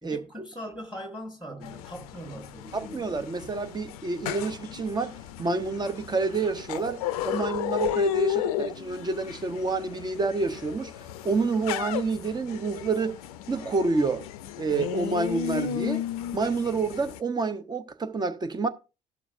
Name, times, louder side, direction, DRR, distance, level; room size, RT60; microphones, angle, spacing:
voice 1, 0.0-3.3, equal, 5° right, 1.6 m, -41 dB
sound 1, 1.6-17.2, left 12 dB, 65° left, 0.5 m, -34 dB
voice 2, 2.7-10.9 11.2-13.2 13.5-14.3 14.6-16.0 16.3-18.7, right 4 dB, 20° right, 0.7 m, -28 dB
17.5 x 6.0 x 2.5 m
figure-of-eight pair, 50°, 20 cm